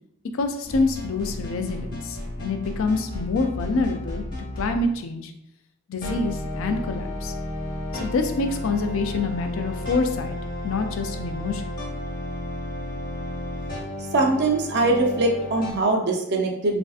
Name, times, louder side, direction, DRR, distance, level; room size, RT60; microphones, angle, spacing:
voice 1, 0.3-4.2 4.6-5.3 5.9-7.3 7.9-10.4 10.6-11.6, left 3 dB, 60° left, 6 dB, 0.3 m, -26 dB
sound 1, 0.6-4.9 6.0-15.7, left 1 dB, 40° left, 0.9 m, -33 dB
voice 2, 14.1-16.8, right 2 dB, 50° right, 2 dB, 0.5 m, -22 dB
3.3 x 2.5 x 2.3 m, 0.77 s
head